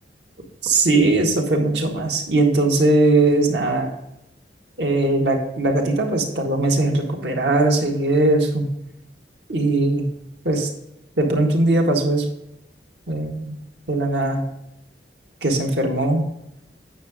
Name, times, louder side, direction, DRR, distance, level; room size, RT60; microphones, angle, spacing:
voice 1, 0.6-3.9 4.8-8.7 9.5-10.1 10.5-10.7 11.2-12.3 13.1-13.6 13.9-14.4 15.4-16.2, right 2 dB, 75° right, 1 dB, 1.7 m, -19 dB
8.9 x 6.7 x 3.6 m, 0.85 s
head